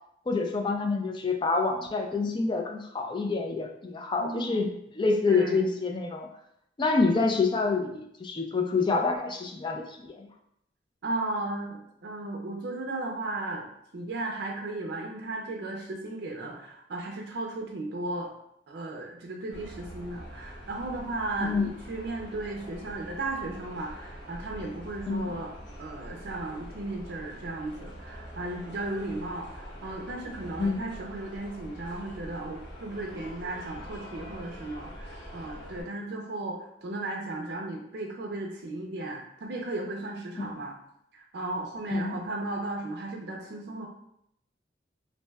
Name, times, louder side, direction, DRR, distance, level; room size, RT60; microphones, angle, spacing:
voice 1, 0.3-4.7 4.9-6.3 6.8-10.3 21.4-21.7 25.1-25.3 30.6-30.8 40.4-40.5 41.9-42.2, left 4 dB, 25° left, 3 dB, 0.3 m, -27 dB
voice 2, 4.2-4.6 5.3-5.7 11.0-13.7 13.9-18.3 18.7-40.7 41.1-43.9, right 2 dB, 65° right, 0 dB, 0.4 m, -35 dB
sound 1, 19.5-35.8, equal, 90° left, 1.3 m, -44 dB
2.6 x 2.1 x 3.3 m, 0.74 s
head